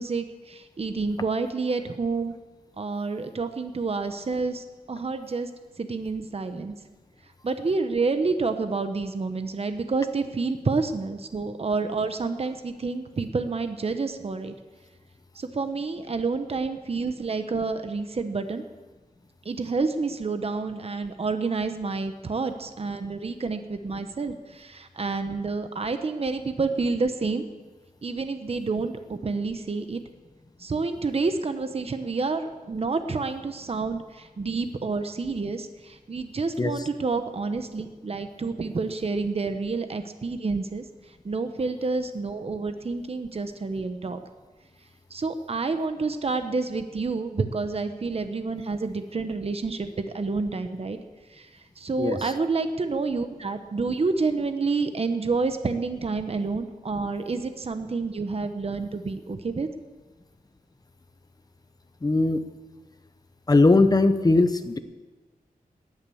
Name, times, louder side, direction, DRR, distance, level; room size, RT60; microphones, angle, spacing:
voice 1, 0.0-2.3 2.8-5.5 5.8-6.7 7.4-14.5 15.3-18.6 19.4-27.4 28.0-30.0 30.6-40.8 41.2-44.2 45.1-51.0 51.3-59.7, right 4 dB, 40° right, 8 dB, 1.0 m, -29 dB
voice 2, 62.0-62.4 63.5-64.8, left 2 dB, 25° left, 9 dB, 1.0 m, -19 dB
18.5 x 10.5 x 7.1 m, 1.3 s
wide cardioid pair, 130°, 15 cm